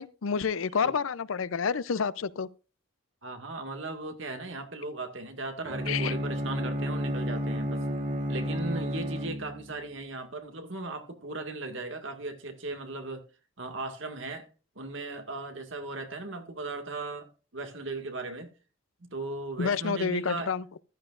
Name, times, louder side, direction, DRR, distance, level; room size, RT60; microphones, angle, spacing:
voice 1, 0.0-2.5 5.9-6.1 19.6-20.6, left 6 dB, 75° left, 0.5 m, -29 dB
voice 2, 3.2-7.8 8.3-13.2 13.6-14.5 14.8-18.5 19.0-20.5, right 2 dB, 65° right, 1.9 m, -37 dB
Bowed string instrument, 5.6-9.8, equal, 40° right, 2.2 m, -31 dB
14.5 x 11.5 x 2.5 m
head